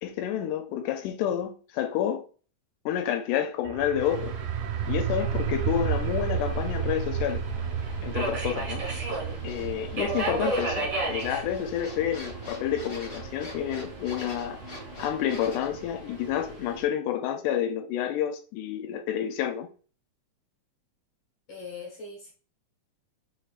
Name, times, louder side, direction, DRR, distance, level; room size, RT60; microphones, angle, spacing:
voice 1, 0.0-2.2 2.9-4.3 4.9-7.4 8.0-8.8 9.4-14.6 15.0-19.7, left 10 dB, 90° left, 2.1 m, -29 dB
sound 1, 3.6-15.1, right 7 dB, 85° right, 2.0 m, -33 dB
Subway metro underground, 4.0-16.8, right 2 dB, 35° right, 1.8 m, -36 dB
sound 2, 8.5-9.7 10.1-10.8 11.1-15.7, left 1 dB, 30° left, 2.2 m, -45 dB
voice 2, 21.5-22.3, left 4 dB, 60° left, 1.9 m, -41 dB
4.7 x 4.7 x 2.4 m
omnidirectional pair, 3.5 m